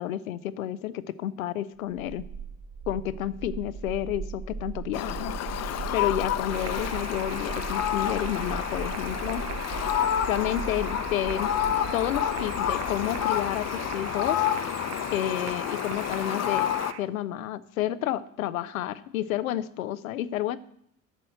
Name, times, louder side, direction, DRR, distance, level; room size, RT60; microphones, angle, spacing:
voice 1, 0.0-2.2 2.9-9.5 10.2-11.6 11.9-14.5 15.1-16.7 17.0-20.6, left 12 dB, 75° left, 15 dB, 0.7 m, -30 dB
sound 1, 1.9-16.9, right 5 dB, 55° right, 3.4 m, -39 dB
Fowl, 4.9-16.9, left 10 dB, 40° left, 0.9 m, -29 dB
sound 2, 6.5-17.0, right 13 dB, 40° right, 0.5 m, -42 dB
12.5 x 6.3 x 7.7 m, 0.72 s
figure-of-eight pair, 60°, 41 cm